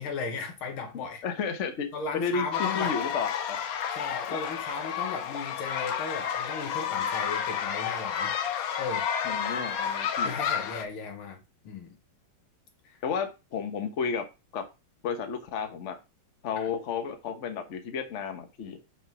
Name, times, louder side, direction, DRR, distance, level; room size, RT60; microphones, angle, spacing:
voice 1, 0.0-1.2 1.9-2.9 3.9-8.3 8.8-9.1 10.2-12.0 12.9-13.0 16.6-16.7, left 4 dB, 85° left, 2.1 m, -36 dB
voice 2, 0.9-1.9 2.1-3.6 9.2-10.3 13.0-14.2 14.5-14.6 15.0-16.0 16.4-18.8, left 6 dB, 45° left, 1.1 m, -32 dB
sound 1, 2.5-10.8, left 8 dB, 65° left, 0.9 m, -31 dB
6.1 x 3.7 x 6.0 m
omnidirectional pair, 2.2 m